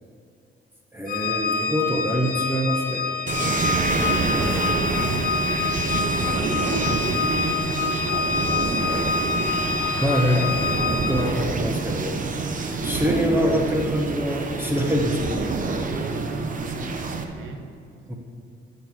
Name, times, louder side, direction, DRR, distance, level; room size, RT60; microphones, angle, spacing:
voice 1, 0.9-3.1 6.2-6.4 10.0-10.6 10.9-12.2 12.5-15.9 18.1-18.2, equal, 10° right, 1 dB, 1.3 m, -25 dB
Organ, 1.1-11.5, left 4 dB, 45° left, 1.0 m, -26 dB
sound 1, 3.3-17.2, right 3 dB, 40° right, 1.0 m, -27 dB
voice 2, 3.9-9.1 12.9-13.1 15.9-17.7, right 4 dB, 85° right, 5 dB, 1.2 m, -35 dB
13.0 x 7.3 x 4.7 m, 2.5 s
cardioid pair, 90°, 20 cm